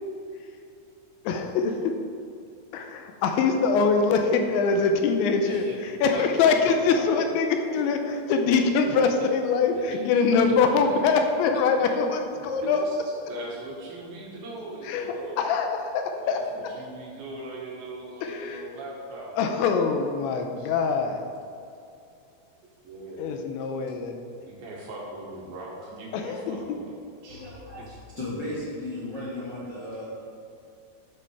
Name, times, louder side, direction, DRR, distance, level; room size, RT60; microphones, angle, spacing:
voice 1, 1.2-1.9 2.7-12.9 14.8-16.4 18.2-18.7 19.4-21.3 23.2-24.2 26.1-26.8, left 5 dB, 85° left, 5 dB, 3.0 m, -24 dB
voice 2, 5.4-6.5 6.8-7.3 7.7-7.8 9.9-10.0 10.4-11.0 11.5-11.6 12.4-13.0 13.3-15.4 16.2-19.8 20.6-20.7 22.8-23.3 24.4-27.0 27.2-27.4 27.8-28.5, right 2 dB, 60° right, -3 dB, 3.2 m, -40 dB
voice 3, 27.3-27.8 28.1-30.1, left 1 dB, 40° left, -9 dB, 1.6 m, -35 dB
13.0 x 6.9 x 4.8 m, 2.5 s
omnidirectional pair, 5.3 m